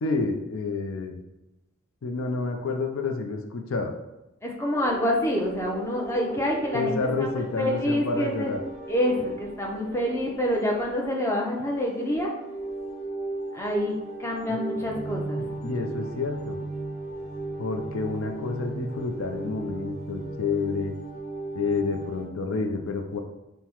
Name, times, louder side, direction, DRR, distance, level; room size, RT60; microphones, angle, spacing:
voice 1, 0.0-1.2 2.0-3.9 6.7-8.6 14.5-14.6 15.6-16.6 17.6-20.9 21.6-23.2, left 3 dB, 70° left, 4 dB, 0.4 m, -29 dB
voice 2, 4.4-7.3 7.6-8.5 8.9-12.3 13.5-15.5, equal, 10° left, -1 dB, 0.5 m, -27 dB
sound 1, 4.7-22.2, right 2 dB, 30° left, 1.1 m, -37 dB
5.6 x 2.1 x 2.9 m, 0.95 s
head